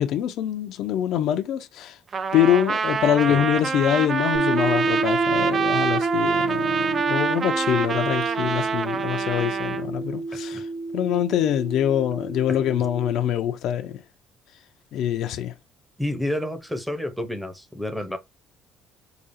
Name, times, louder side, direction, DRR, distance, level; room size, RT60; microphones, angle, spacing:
voice 1, 0.0-2.0 2.3-10.7 10.9-14.0 14.9-15.5, left 10 dB, 70° left, 0.5 m, -24 dB
Trumpet, 2.1-9.8, right 6 dB, 35° right, 0.4 m, -26 dB
sound 1, 4.3-13.2, right 3 dB, 85° right, 1.6 m, -29 dB
voice 2, 16.0-18.2, left 1 dB, 5° right, 0.7 m, -30 dB
4.9 x 2.4 x 2.6 m
cardioid pair, 120°, 0 cm